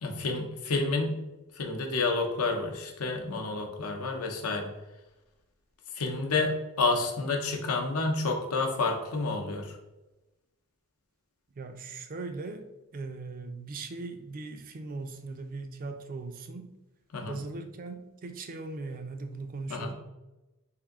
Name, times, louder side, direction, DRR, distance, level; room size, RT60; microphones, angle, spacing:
voice 1, 0.0-1.1 1.6-4.7 5.9-9.8 17.1-17.4 19.7-19.9, left 3 dB, 85° left, 3 dB, 0.7 m, -29 dB
voice 2, 11.6-12.7 12.9-16.7 17.3-19.9, right 3 dB, 40° right, 7 dB, 0.4 m, -39 dB
3.4 x 2.6 x 3.6 m, 1.0 s
head